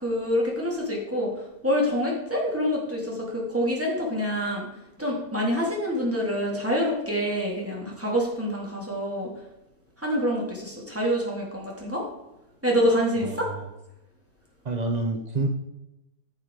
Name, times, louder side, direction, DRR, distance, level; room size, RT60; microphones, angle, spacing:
voice 1, 0.0-4.7 5.0-9.3 10.0-12.0 12.6-13.5, equal, 10° right, -3 dB, 2.8 m, -26 dB
voice 2, 13.2-13.7 14.6-15.5, right 3 dB, 45° right, 3 dB, 0.5 m, -28 dB
11.0 x 6.6 x 4.7 m, 0.92 s
omnidirectional pair, 1.7 m